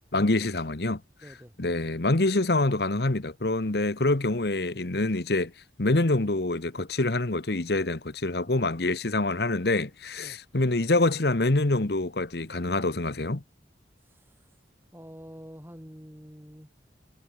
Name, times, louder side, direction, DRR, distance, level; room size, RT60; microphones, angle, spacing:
voice 1, 0.1-1.0 1.6-5.5 5.8-13.4, left 2 dB, 60° left, 1.2 m, -26 dB
voice 2, 1.2-1.6 10.2-10.4 14.0-14.7 14.9-16.7, equal, 10° right, 2.9 m, -47 dB
head